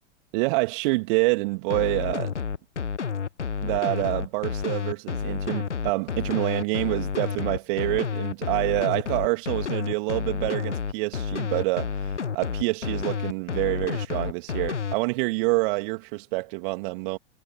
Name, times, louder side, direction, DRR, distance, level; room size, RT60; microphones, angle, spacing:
voice 1, 0.3-2.3 3.6-17.2, right 25 dB, 45° right, 2.6 m, -27 dB
sound 1, 1.7-15.0, left 6 dB, 80° left, 1.0 m, -30 dB
figure-of-eight pair, 95°, 35 cm